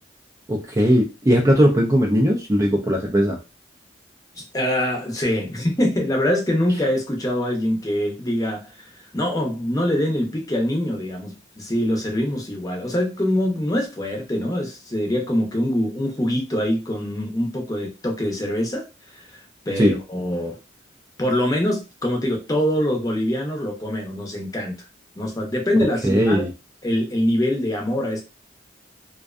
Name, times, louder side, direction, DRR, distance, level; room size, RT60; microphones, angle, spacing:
voice 1, 0.5-3.4 19.8-19.9 26.0-26.5, equal, 15° right, 0.4 m, -18 dB
voice 2, 4.5-18.8 19.1-19.2 19.6-20.6 21.2-24.7 25.2-26.4 26.8-28.2, left 1 dB, 20° left, 0.7 m, -24 dB
2.5 x 2.2 x 2.4 m
head